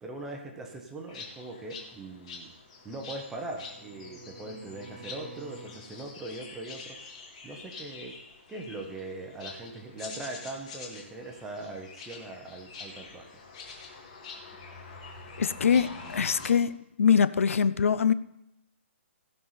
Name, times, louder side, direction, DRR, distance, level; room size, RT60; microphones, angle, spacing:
voice 1, 0.0-2.5 2.8-7.0 7.4-8.2 8.5-13.4, right 2 dB, 5° right, 0.6 m, -41 dB
sound 1, 1.1-16.5, left 4 dB, 25° left, 1.6 m, -46 dB
Bowed string instrument, 2.5-5.9, right 3 dB, 85° right, 1.7 m, -50 dB
voice 2, 15.4-18.1, left 7 dB, 80° left, 0.5 m, -23 dB
16.0 x 5.5 x 5.6 m
hypercardioid pair, 180°, 7 cm